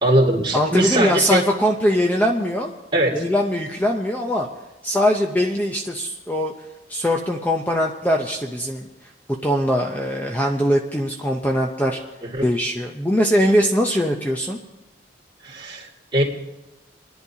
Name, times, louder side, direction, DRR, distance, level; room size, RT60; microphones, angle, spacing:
voice 1, 0.0-1.4 2.9-3.2 12.2-12.5 15.4-16.2, right 1 dB, 25° right, -3 dB, 2.3 m, -20 dB
voice 2, 0.5-2.7 3.1-4.5 4.8-6.5 6.9-8.9 9.4-12.0 12.4-14.6, equal, 10° left, 1 dB, 0.6 m, -21 dB
30.0 x 10.5 x 2.8 m, 1.0 s
head